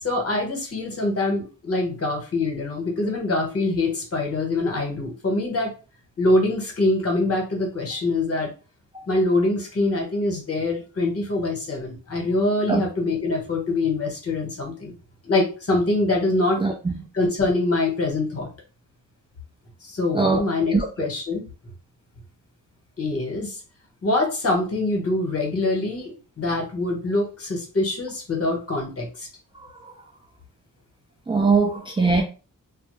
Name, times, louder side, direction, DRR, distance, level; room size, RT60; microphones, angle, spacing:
voice 1, 0.0-5.7 6.2-8.5 9.1-14.9 15.2-16.6 17.1-18.5 19.8-21.5 23.0-23.6 24.0-29.3, left 2 dB, 45° left, 1.1 m, -24 dB
voice 2, 16.6-17.0 20.1-20.4 20.7-20.9 31.3-32.2, right 4 dB, 15° right, 0.3 m, -20 dB
2.2 x 2.0 x 3.1 m
cardioid pair, 85°, 33 cm